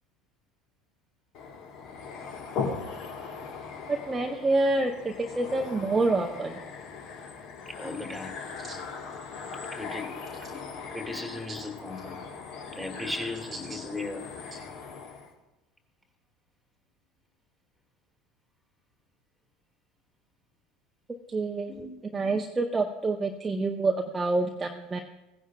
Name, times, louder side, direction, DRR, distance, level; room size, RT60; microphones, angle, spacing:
sound 1, 1.3-15.3, left 5 dB, 55° left, 1.4 m, -39 dB
voice 1, 3.9-6.6 8.6-8.8 13.7-13.8 21.3-21.7 22.1-25.0, right 3 dB, 20° right, 3 dB, 0.7 m, -27 dB
voice 2, 7.7-8.4 9.7-10.2 10.4-10.6 10.9-12.2 12.7-14.2 21.7-21.9, left 2 dB, ahead, 2 dB, 1.8 m, -37 dB
16.0 x 10.0 x 2.3 m, 0.97 s
figure-of-eight pair, 70°, 0 cm